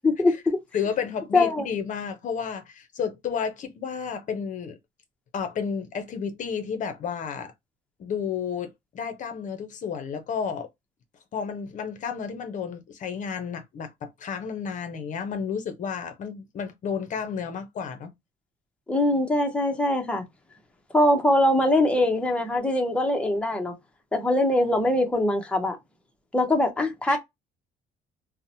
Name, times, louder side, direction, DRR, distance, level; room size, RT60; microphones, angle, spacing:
voice 1, 0.2-0.6 1.3-1.7 18.9-20.2 20.9-23.7 24.1-25.8 26.3-27.2, left 1 dB, 5° left, 0.7 m, -22 dB
voice 2, 0.7-4.8 5.3-7.5 8.0-8.7 8.9-10.7 11.3-18.1 27.1-27.2, left 6 dB, 50° left, 0.6 m, -31 dB
2.8 x 2.1 x 2.6 m
cardioid pair, 110°, 17 cm